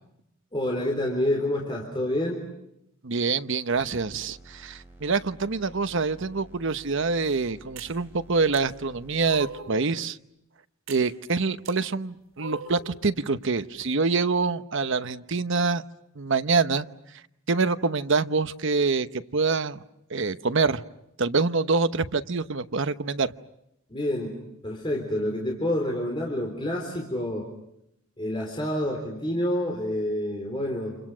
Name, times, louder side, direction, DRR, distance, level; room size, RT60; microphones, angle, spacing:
voice 1, 0.5-2.4 23.9-24.4 24.6-27.5 28.2-31.0, left 1 dB, 25° left, 0 dB, 3.9 m, -28 dB
voice 2, 3.0-10.2 10.9-15.8 16.2-16.9 17.5-19.8 20.1-20.8 21.2-23.3, right 4 dB, 65° right, 11 dB, 1.0 m, -25 dB
sound 1, 3.7-9.4, right 1 dB, 10° right, 7.2 m, -51 dB
sound 2, 7.8-7.9 8.5-8.6 9.2-9.8 10.9-11.0 11.6-11.8 12.4-12.9, right 4 dB, 85° right, 5.1 m, -39 dB
29.5 x 28.5 x 6.2 m, 0.79 s
head